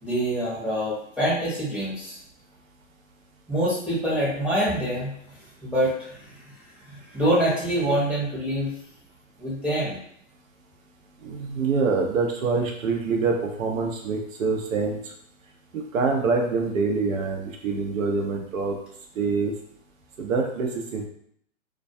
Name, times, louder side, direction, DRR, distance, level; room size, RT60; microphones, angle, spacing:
voice 1, 0.0-2.1 3.5-5.1 5.6-6.2 6.9-8.7 9.4-10.0, right 1 dB, 5° right, -8 dB, 0.6 m, -25 dB
voice 2, 11.2-15.0 15.7-18.8 19.2-19.5 20.2-21.0, right 4 dB, 80° right, 2 dB, 0.7 m, -25 dB
2.2 x 2.2 x 2.6 m, 0.66 s
hypercardioid pair, 125°, 39 cm